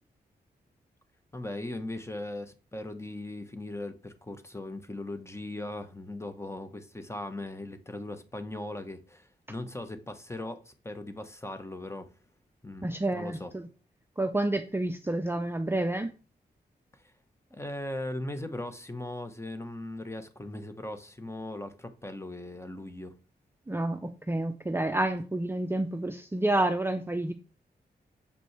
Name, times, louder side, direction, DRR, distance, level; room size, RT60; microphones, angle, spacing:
voice 1, 1.3-12.1 12.6-13.5 16.9-17.0 17.5-23.2, left 1 dB, 15° left, 1.1 m, -39 dB
voice 2, 12.8-13.7 14.2-16.1 23.7-27.3, right 1 dB, 15° right, 0.6 m, -29 dB
6.9 x 5.1 x 3.3 m
cardioid pair, 65°, 18 cm